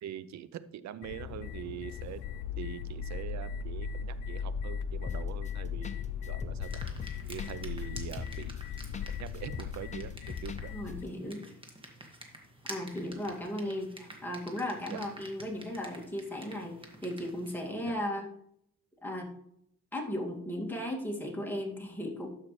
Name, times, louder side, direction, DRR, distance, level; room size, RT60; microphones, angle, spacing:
voice 1, 0.0-2.2 2.6-6.8 7.3-8.5 9.2-10.1 10.4-10.7 14.9-15.0 17.8-18.0, right 10 dB, 65° right, 15 dB, 0.6 m, -43 dB
sound 1, 1.0-11.0, left 7 dB, 85° left, 0.5 m, -38 dB
sound 2, 5.1-5.5 5.8-6.0 6.2-9.1 9.3-10.6 10.9-11.0, left 4 dB, 25° left, 0.6 m, -41 dB
sound 3, 6.6-17.7, right 1 dB, 15° right, 1.8 m, -50 dB
voice 2, 10.7-11.4 12.7-18.3 19.0-19.3 19.9-22.3, left 1 dB, 5° left, -1 dB, 2.1 m, -36 dB
12.5 x 5.6 x 3.2 m, 0.72 s
cardioid pair, 90°, 30 cm